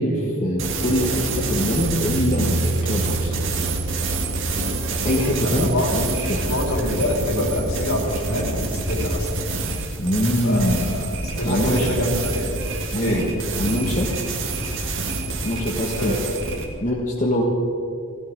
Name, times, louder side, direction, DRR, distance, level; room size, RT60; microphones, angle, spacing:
voice 1, 0.0-3.3 4.7-6.5 10.0-11.0 11.5-11.9 12.9-13.3 13.6-14.1 15.4-16.1 16.8-17.4, equal, 35° left, -2 dB, 1.6 m, -23 dB
sound 1, 0.6-16.7, right 3 dB, 60° right, 1.8 m, -27 dB
Bass guitar, 1.8-8.0, right 2 dB, 85° right, 2.1 m, -30 dB
voice 2, 5.4-5.9 6.5-9.4 10.4-11.1 11.4-12.6 13.0-13.3 15.9-16.3, left 1 dB, 75° left, -1 dB, 4.2 m, -25 dB
17.0 x 16.5 x 4.8 m, 2.5 s
head